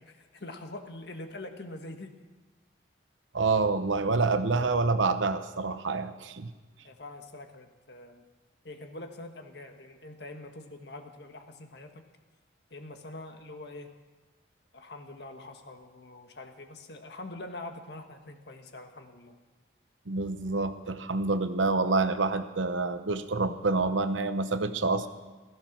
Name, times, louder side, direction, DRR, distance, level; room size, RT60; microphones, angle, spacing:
voice 1, 0.0-2.2 6.8-8.2 8.6-12.0 12.7-13.9 14.7-19.4, left 2 dB, 60° left, 5 dB, 1.5 m, -44 dB
voice 2, 3.3-6.5 20.1-25.1, right 3 dB, 85° right, 11 dB, 0.9 m, -27 dB
16.0 x 14.5 x 6.0 m, 1.3 s
head